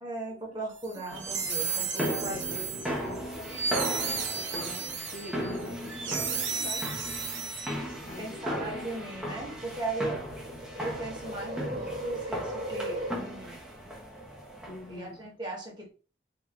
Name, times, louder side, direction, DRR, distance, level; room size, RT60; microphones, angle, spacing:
voice 1, 0.0-2.4 8.2-10.2 10.8-13.6 14.9-15.9, right 2 dB, 25° right, 1.5 m, -37 dB
sound 1, 0.8-8.1, right 5 dB, 90° right, 0.9 m, -34 dB
sound 2, 1.1-15.0, equal, 5° right, 1.0 m, -37 dB
voice 2, 1.8-6.9 8.0-8.8 14.7-15.2, left 2 dB, 45° left, 0.5 m, -45 dB
sound 3, 4.5-5.3 6.5-6.9 7.8-13.1, right 1 dB, 40° right, 1.0 m, -39 dB
3.9 x 2.9 x 2.9 m
head